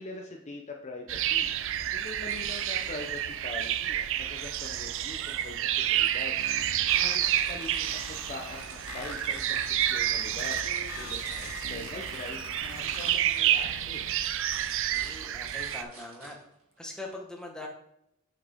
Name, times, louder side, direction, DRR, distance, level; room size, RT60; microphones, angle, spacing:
voice 1, 0.0-1.5 1.9-10.6 11.0-14.2, left 2 dB, 35° left, 2 dB, 0.8 m, -43 dB
sound 1, 1.1-15.8, right 11 dB, 65° right, 0.5 m, -29 dB
sound 2, 1.6-3.9 4.3-17.0, right 2 dB, 80° right, 2.9 m, -51 dB
sound 3, 6.4-14.4, left 8 dB, 75° left, 0.5 m, -46 dB
voice 2, 14.9-16.4 16.8-17.7, left 2 dB, 5° left, 0 dB, 1.4 m, -42 dB
8.4 x 5.8 x 3.6 m, 0.78 s
head